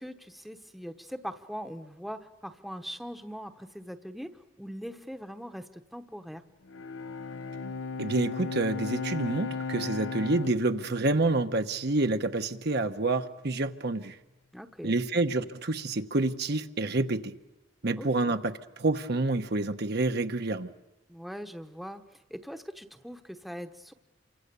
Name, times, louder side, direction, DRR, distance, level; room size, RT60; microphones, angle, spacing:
voice 1, 0.0-6.4 14.5-15.0 18.0-18.4 21.1-23.9, equal, ahead, 8 dB, 1.0 m, -41 dB
Bowed string instrument, 6.7-12.2, left 4 dB, 90° left, 0.9 m, -37 dB
voice 2, 8.0-14.2 14.8-17.3 17.8-20.7, right 2 dB, 55° right, 7 dB, 1.0 m, -28 dB
29.0 x 25.0 x 6.9 m, 1.1 s
head